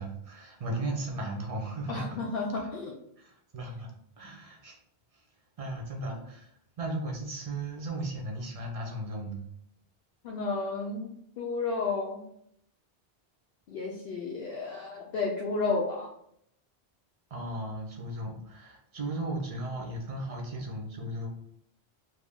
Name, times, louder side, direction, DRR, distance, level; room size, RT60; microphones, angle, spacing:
voice 1, 0.0-2.2 2.6-2.7 3.2-3.9 4.2-4.8 5.1-5.2 5.6-9.4 17.3-21.3, right 1 dB, 40° right, 0 dB, 0.7 m, -36 dB
voice 2, 1.9-2.9 10.2-12.2 13.7-16.1, left 3 dB, 70° left, -3 dB, 0.7 m, -32 dB
2.6 x 2.6 x 3.5 m, 0.73 s
omnidirectional pair, 1.0 m